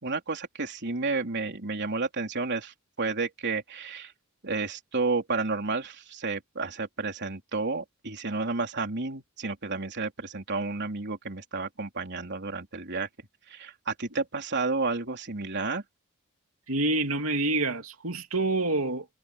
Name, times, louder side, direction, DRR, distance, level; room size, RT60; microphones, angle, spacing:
voice 1, 0.0-4.1 4.4-13.1 13.5-15.8, right 3 dB, 55° right, 3.7 m, -31 dB
voice 2, 16.7-19.2, right 2 dB, 75° right, 3.1 m, -27 dB
head